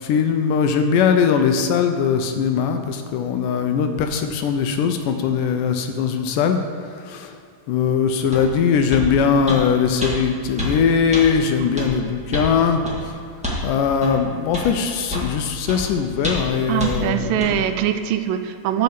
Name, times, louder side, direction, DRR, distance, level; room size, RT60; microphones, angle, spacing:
voice 1, 0.0-6.6 6.9-7.4 7.7-13.1 13.6-17.6, left 6 dB, 80° left, 6 dB, 2.1 m, -20 dB
sound 1, 8.3-8.5 8.9-9.1 9.5-9.6 10.0-10.1 10.6-10.7 11.1-11.3 11.8-11.9 12.3-12.5 12.8-13.0 13.4-13.6 14.0-14.1 14.5-14.7 15.1-15.3 15.7-15.8 16.2-16.5 16.8-16.9 17.4-17.5, left 1 dB, 5° right, 0.4 m, -27 dB
voice 2, 16.7-18.8, right 10 dB, 80° right, 9 dB, 2.2 m, -22 dB
11.0 x 5.3 x 7.5 m, 2.3 s
omnidirectional pair, 4.0 m